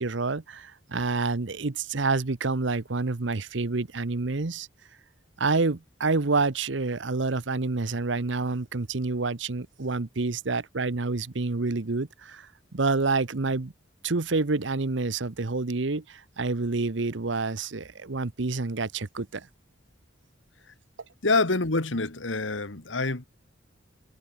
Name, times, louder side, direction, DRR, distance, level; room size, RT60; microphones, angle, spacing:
voice 1, 0.0-4.7 5.4-12.5 12.7-13.7 14.0-19.5, right 3 dB, 70° right, 1.0 m, -28 dB
voice 2, 21.2-23.3, left 3 dB, 75° left, 1.9 m, -26 dB
head